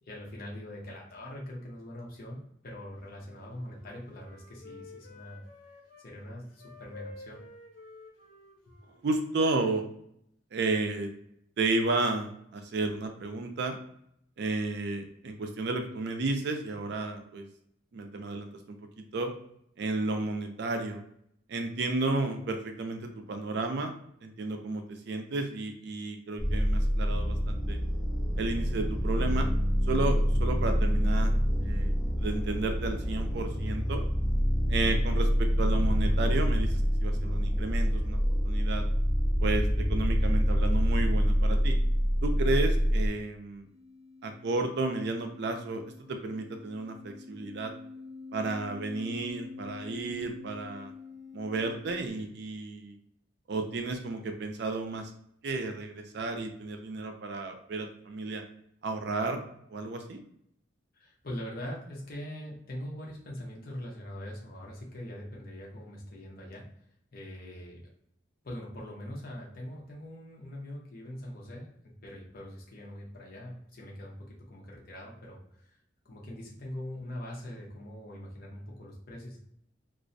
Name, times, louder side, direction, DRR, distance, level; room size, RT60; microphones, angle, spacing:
voice 1, 0.0-5.5 6.0-7.4 60.9-66.6 67.1-67.8 68.4-75.8 76.0-79.4, left 1 dB, 50° left, -2 dB, 0.7 m, -42 dB
Wind instrument woodwind instrument, 3.0-6.1 6.5-10.0, left 3 dB, 90° left, 0.7 m, -52 dB
voice 2, 9.0-9.9 10.5-11.1 11.6-13.8 14.4-17.4 17.9-19.3 19.8-21.0 21.5-23.9 24.2-27.8 28.4-29.5 29.9-31.3 31.6-31.9 32.2-34.0 34.7-38.2 38.4-38.9 39.4-41.7 42.2-43.6 44.2-45.8 46.1-47.7 48.3-50.9 51.3-53.0 53.5-55.1 55.4-58.4 58.8-59.4 59.7-60.2, right 2 dB, 60° right, 5 dB, 0.4 m, -32 dB
sound 1, 26.4-43.1, equal, ahead, 0.5 m, -26 dB
sound 2, 43.6-52.1, left 4 dB, 30° right, 0.9 m, -47 dB
2.4 x 2.1 x 2.5 m, 0.71 s
head